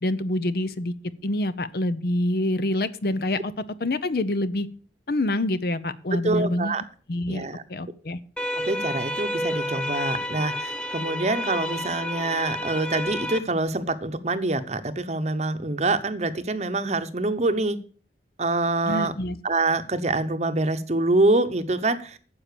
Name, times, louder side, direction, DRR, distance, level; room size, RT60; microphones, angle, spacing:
voice 1, 0.0-0.9 1.2-4.7 5.1-6.8 7.1-8.2 18.9-19.4, left 1 dB, 55° left, 14 dB, 0.7 m, -26 dB
voice 2, 6.1-6.8 7.3-7.6 8.6-17.8 18.4-19.1 19.4-22.2, right 2 dB, 40° right, 10 dB, 0.8 m, -25 dB
sound 1, 8.4-13.4, equal, 5° left, 0.7 m, -30 dB
9.7 x 7.3 x 6.7 m, 0.44 s
head